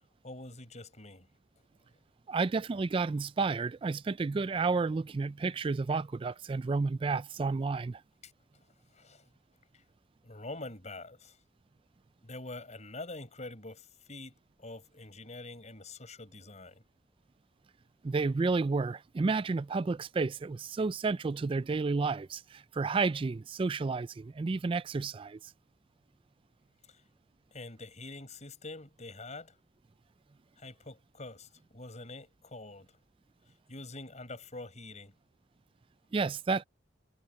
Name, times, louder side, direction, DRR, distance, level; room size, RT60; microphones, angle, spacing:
voice 1, 0.2-1.3 8.2-8.3 8.6-9.3 9.7-9.8 10.2-11.4 12.2-16.8 26.9-27.0 27.5-29.6 30.6-33.0 33.7-35.1, left 2 dB, 40° left, 6.9 m, -45 dB
voice 2, 2.3-8.0 18.0-25.5 36.1-36.6, right 4 dB, 30° right, 0.3 m, -31 dB
head